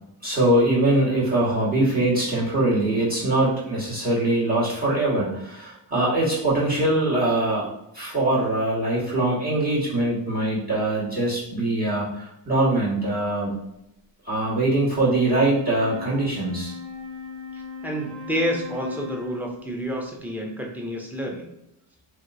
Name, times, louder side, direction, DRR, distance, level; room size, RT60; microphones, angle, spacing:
voice 1, 0.2-7.7 7.9-13.5 14.2-16.7, right 1 dB, 20° right, -6 dB, 1.4 m, -22 dB
Wind instrument woodwind instrument, 14.9-19.7, left 4 dB, 45° right, 1.0 m, -38 dB
voice 2, 17.5-21.5, equal, 5° right, 0 dB, 0.5 m, -29 dB
3.2 x 2.8 x 2.5 m, 0.82 s
cardioid pair, 115°, 48 cm